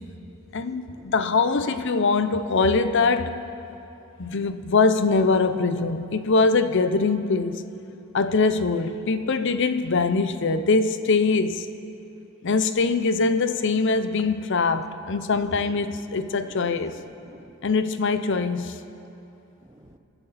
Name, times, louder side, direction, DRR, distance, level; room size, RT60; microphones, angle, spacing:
voice 1, 0.5-3.4 4.2-7.6 8.1-11.7 12.4-17.0 17.6-18.8, left 4 dB, 60° left, 0.7 m, -23 dB
voice 2, 15.3-17.5 19.6-20.0, right 1 dB, 15° right, 0.7 m, -48 dB
27.0 x 11.0 x 4.2 m
head